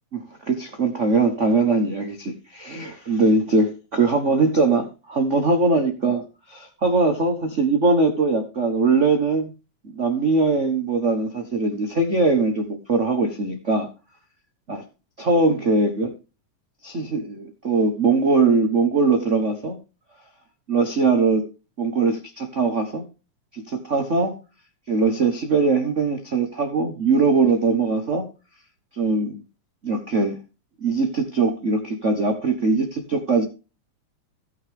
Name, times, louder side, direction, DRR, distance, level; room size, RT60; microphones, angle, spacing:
voice 1, 0.5-6.2 6.5-9.5 9.9-13.9 14.7-14.8 15.2-16.1 16.8-19.8 20.7-21.4 21.8-23.0 23.5-24.3 24.9-28.2 28.9-29.4 29.8-30.4 30.8-33.4, right 3 dB, 80° right, 5 dB, 0.6 m, -21 dB
17.0 x 6.2 x 3.5 m, 0.31 s
omnidirectional pair, 3.4 m